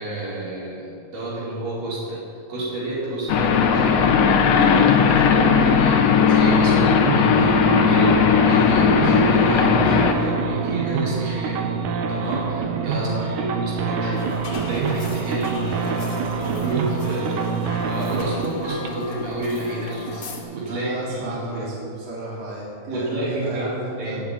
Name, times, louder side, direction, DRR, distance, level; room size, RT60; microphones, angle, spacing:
voice 1, 0.0-2.2 2.5-11.7 12.1-21.7 22.9-23.7 24.0-24.2, right 2 dB, 85° right, -7 dB, 6.4 m, -30 dB
sound 1, 3.3-10.1, left 6 dB, 80° left, 2.8 m, -17 dB
sound 2, 6.5-20.6, right 5 dB, 70° right, 2.5 m, -27 dB
voice 2, 12.9-13.3 20.7-24.2, right 2 dB, 50° right, -6 dB, 4.6 m, -33 dB
sound 3, 14.1-20.4, left 3 dB, 45° left, 2.5 m, -37 dB
19.5 x 7.5 x 8.8 m, 2.5 s
omnidirectional pair, 3.8 m